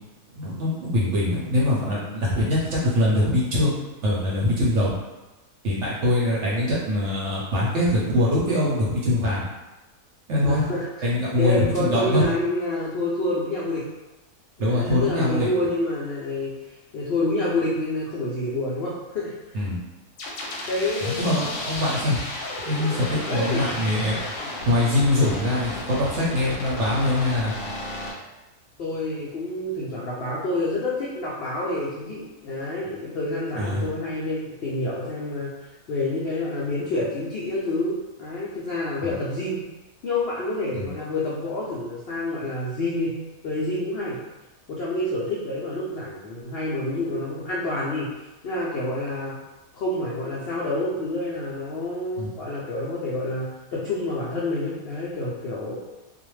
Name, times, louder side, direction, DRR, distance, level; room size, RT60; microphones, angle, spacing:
voice 1, 0.3-3.7 4.0-4.9 5.6-9.5 10.3-10.7 11.0-12.2 14.6-15.5 19.5-19.8 21.0-22.2 22.6-24.2 24.7-27.5 33.6-33.8 39.0-39.1 40.7-40.9 52.2-52.3, left 1 dB, 60° right, -6 dB, 0.8 m, -23 dB
voice 2, 10.4-13.8 14.6-19.6 20.5-21.6 23.3-23.6 28.8-35.5 35.9-39.6 40.0-43.1 43.4-44.2 44.7-48.1 48.4-49.3 49.7-55.7, left 2 dB, 90° left, -6 dB, 0.5 m, -28 dB
sound 1, 20.2-28.1, left 2 dB, 70° left, 0.9 m, -33 dB
2.4 x 2.1 x 3.1 m, 1.1 s
omnidirectional pair, 1.6 m